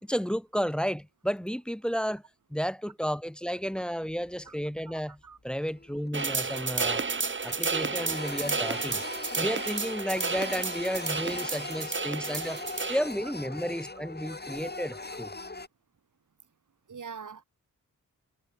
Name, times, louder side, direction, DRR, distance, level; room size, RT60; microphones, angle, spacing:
voice 1, 0.0-2.2 2.5-7.0 7.4-9.0 9.4-12.6 12.9-15.3, equal, 5° left, 0.7 m, -32 dB
Printer, 4.1-4.7 5.0-5.2 5.6-7.2 7.4-15.7, left 3 dB, 30° left, 2.8 m, -40 dB
voice 2, 4.9-5.4 8.1-8.2 8.7-8.8 13.2-13.3 16.9-17.4, right 6 dB, 60° right, 1.7 m, -44 dB
sound 1, 6.1-13.0, right 4 dB, 35° right, 1.1 m, -31 dB
cardioid pair, 55°, 35 cm